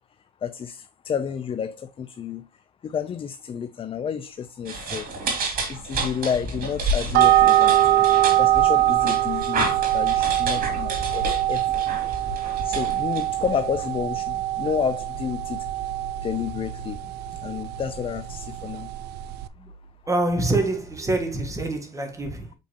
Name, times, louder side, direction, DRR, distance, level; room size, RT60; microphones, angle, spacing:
voice 1, 0.4-2.4 2.8-5.1 5.7-7.8 8.4-9.7 9.9-11.8 12.6-15.6 16.2-17.0 17.4-18.9, left 7 dB, 35° left, 0.5 m, -30 dB
sound 1, 4.4-21.5, right 2 dB, 10° left, 4.1 m, -45 dB
sound 2, 4.6-13.7, right 2 dB, 55° right, 2.8 m, -30 dB
sound 3, 7.1-19.5, right 14 dB, 75° right, 0.5 m, -23 dB
voice 2, 20.1-22.5, right 2 dB, 20° right, 1.7 m, -25 dB
6.6 x 5.2 x 2.9 m
cardioid pair, 110°, 17 cm